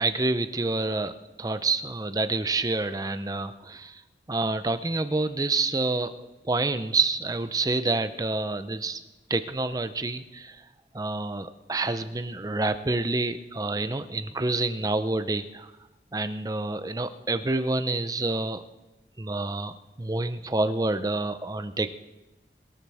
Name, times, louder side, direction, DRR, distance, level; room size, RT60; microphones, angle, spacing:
voice 1, 0.0-4.0 4.3-6.1 6.5-9.0 9.3-10.6 10.9-15.7 16.1-18.6 19.2-21.9, right 2 dB, 20° right, 11 dB, 0.6 m, -28 dB
22.0 x 13.5 x 3.5 m, 1.1 s
head